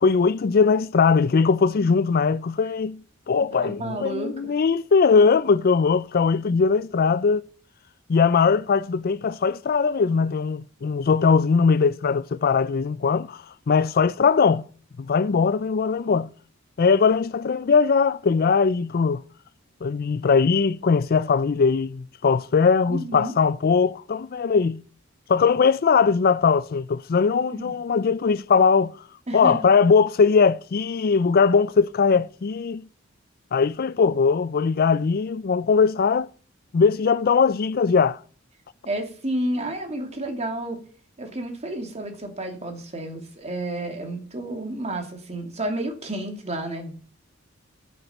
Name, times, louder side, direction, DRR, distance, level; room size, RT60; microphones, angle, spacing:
voice 1, 0.0-3.0 3.3-7.4 8.1-14.7 15.0-16.3 16.8-19.2 19.8-24.8 25.3-29.0 29.3-32.8 33.5-36.3 36.7-38.2, left 5 dB, 50° left, 0.4 m, -20 dB
voice 2, 3.5-4.5 22.9-23.3 27.5-27.7 29.3-29.7 38.8-40.8 41.2-46.9, right 1 dB, 35° right, 2.8 m, -31 dB
9.1 x 8.1 x 7.1 m
head